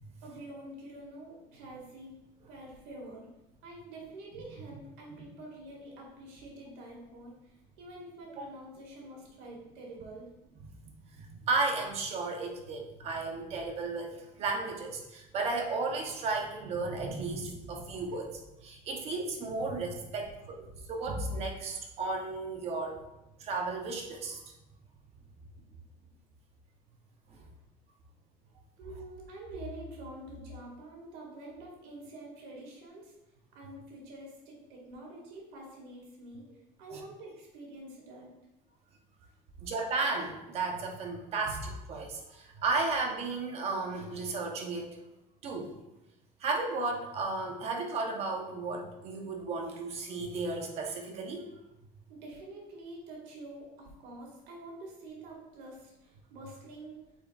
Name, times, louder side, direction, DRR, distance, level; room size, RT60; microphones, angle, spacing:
voice 1, 0.2-2.2 2.5-3.3 3.6-10.3 28.8-33.1 33.5-36.5 36.8-38.3 52.1-57.0, right 1 dB, 80° right, -2 dB, 2.1 m, -47 dB
voice 2, 11.1-23.0 23.4-24.4 27.3-27.5 36.9-37.0 39.6-45.0 45.4-45.7 46.4-51.5, right 3 dB, 40° right, 2 dB, 0.9 m, -34 dB
8.6 x 4.5 x 2.4 m, 0.94 s
cardioid pair, 175°, 17 cm